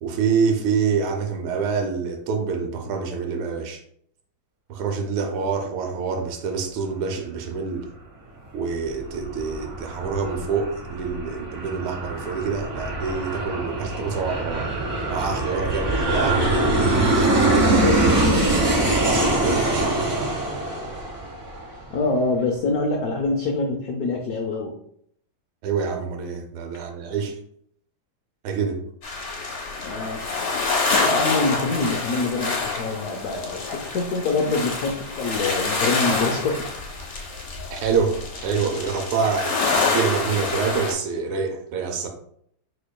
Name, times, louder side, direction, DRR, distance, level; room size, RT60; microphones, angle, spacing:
voice 1, 0.0-3.8 4.7-7.9 8.5-14.7 15.1-16.4 16.8-18.3 18.6-19.7 25.6-27.4 28.4-28.8 37.7-42.1, right 5 dB, 90° right, 4 dB, 1.6 m, -26 dB
Aircraft, 8.7-21.9, right 1 dB, 40° right, 0.8 m, -23 dB
voice 2, 21.9-24.8 29.8-30.2 31.0-36.7, left 3 dB, 80° left, 2 dB, 0.8 m, -25 dB
sound 1, 29.0-40.9, left 4 dB, 50° left, 0.8 m, -27 dB
5.1 x 4.4 x 2.2 m, 0.67 s
omnidirectional pair, 2.3 m